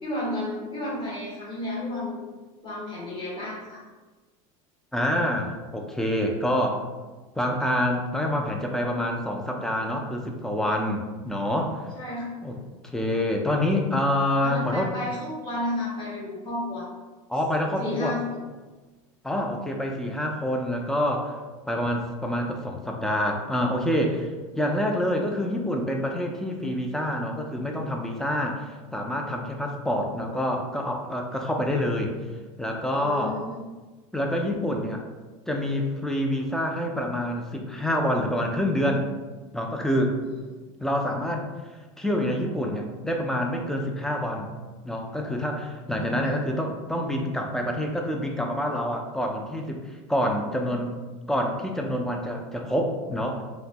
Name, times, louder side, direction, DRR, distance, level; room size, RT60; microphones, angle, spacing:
voice 1, 0.0-2.2 2.6-3.8 11.9-12.3 14.4-16.9 17.8-18.4 32.9-33.6 40.2-40.3, left 1 dB, 25° left, -6 dB, 1.3 m, -32 dB
voice 2, 4.9-6.9 7.4-11.9 12.4-12.6 12.9-14.9 17.3-18.2 19.2-21.4 21.7-32.1 32.6-33.4 34.1-35.0 35.5-39.1 39.5-40.2 40.8-41.5 42.0-44.5 44.8-51.0 51.3-53.4, left 1 dB, 5° left, 2 dB, 0.3 m, -27 dB
3.0 x 2.1 x 2.8 m, 1.3 s
supercardioid pair, 110°, 18 cm